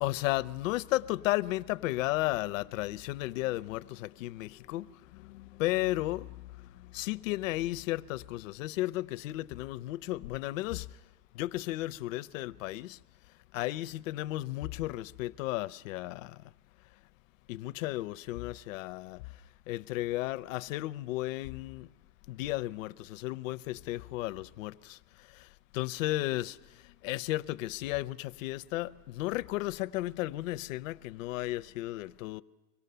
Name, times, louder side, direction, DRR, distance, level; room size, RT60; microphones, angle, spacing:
voice 1, 0.0-4.8 5.6-6.3 6.9-10.8 11.4-12.9 13.5-16.2 17.5-19.2 19.7-21.9 22.3-24.7 25.7-26.5 27.0-28.9 29.2-32.4, left 17 dB, 60° left, 0.7 m, -33 dB
25.0 x 18.0 x 6.8 m
supercardioid pair, 160°, 46 cm